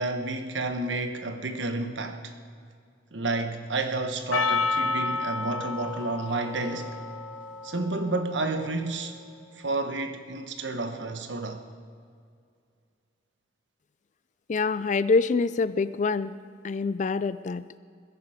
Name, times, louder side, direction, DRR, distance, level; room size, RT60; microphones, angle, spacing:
voice 1, 0.0-2.3 3.1-7.0 7.6-9.1 9.6-11.6, right 2 dB, 75° right, 1.2 m, -30 dB
Percussion, 4.3-8.9, left 4 dB, 85° left, 1.0 m, -31 dB
voice 2, 14.5-16.3 16.6-17.6, left 4 dB, 40° left, 0.4 m, -25 dB
21.5 x 10.5 x 5.0 m
head